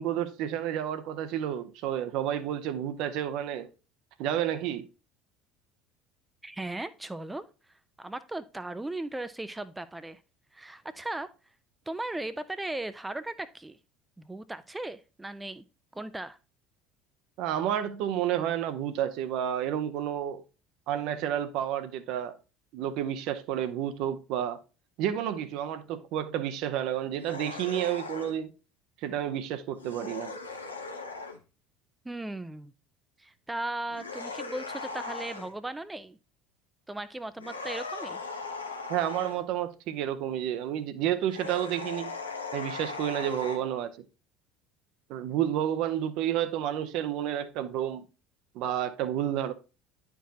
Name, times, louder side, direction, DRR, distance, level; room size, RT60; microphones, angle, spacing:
voice 1, 0.0-3.7 4.2-4.9 17.4-20.4 20.9-22.4 22.7-24.6 25.0-28.5 29.0-30.4 38.9-42.1 42.5-44.0 45.1-48.1 48.5-49.5, right 10 dB, 55° right, 0.6 m, -30 dB
voice 2, 6.4-7.5 8.0-10.2 10.5-11.3 11.9-13.8 14.2-15.6 15.9-16.4 32.0-32.7 33.2-36.2 36.9-38.2, right 2 dB, 10° right, 0.4 m, -37 dB
sound 1, 27.2-28.4 29.7-31.4 33.9-35.5 37.4-39.4 41.3-43.6, left 4 dB, 85° left, 0.7 m, -38 dB
10.0 x 4.6 x 2.7 m
figure-of-eight pair, 65°, 0 cm